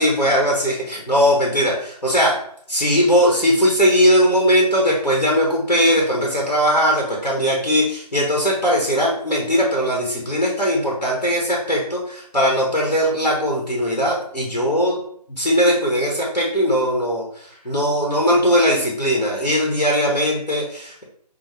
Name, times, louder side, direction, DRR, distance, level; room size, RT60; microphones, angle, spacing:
voice 1, 0.0-2.3 2.7-15.0 15.3-21.0, equal, 85° left, -2 dB, 1.2 m, -19 dB
5.3 x 2.0 x 3.4 m, 0.65 s
figure-of-eight pair, 155°, 21 cm